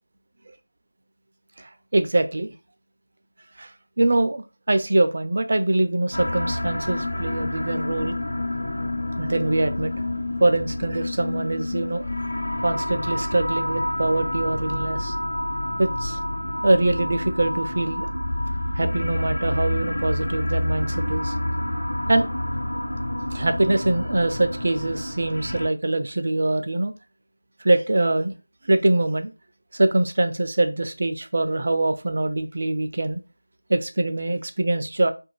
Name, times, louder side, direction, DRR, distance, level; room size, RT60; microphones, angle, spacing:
voice 1, 1.6-2.5 3.6-3.7 4.0-8.2 9.2-9.9 10.4-12.0 12.6-15.1 15.8-16.2 16.6-18.1 18.8-21.3 22.1-22.3 23.3-26.9 27.6-28.3 28.7-29.3 29.7-33.2 33.7-35.1, right 2 dB, 35° right, 8 dB, 0.3 m, -23 dB
sound 1, 6.1-25.7, left 1 dB, 55° left, 1.0 m, -28 dB
2.5 x 2.2 x 3.0 m, 0.29 s
figure-of-eight pair, 175°, 0 cm